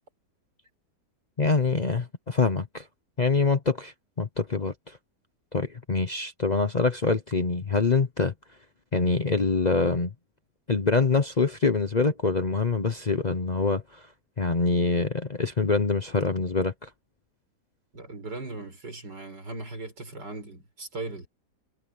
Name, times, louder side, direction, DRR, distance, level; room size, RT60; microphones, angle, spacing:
voice 1, 1.4-2.9 3.2-5.0 5.5-8.3 8.9-10.1 10.7-14.0 14.4-16.9, left 4 dB, 35° left, 0.8 m, -25 dB
voice 2, 17.9-21.3, right 2 dB, 90° right, 6.3 m, -38 dB
omnidirectional pair, 1.8 m